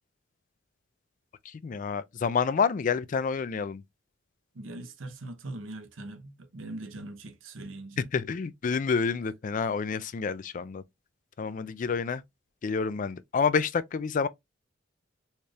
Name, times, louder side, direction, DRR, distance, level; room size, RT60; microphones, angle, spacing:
voice 1, 1.5-3.8 8.1-10.8 11.4-12.2 12.6-14.3, left 5 dB, 40° left, 0.3 m, -28 dB
voice 2, 4.5-8.1, right 2 dB, 85° right, 0.8 m, -41 dB
4.2 x 3.3 x 2.3 m
head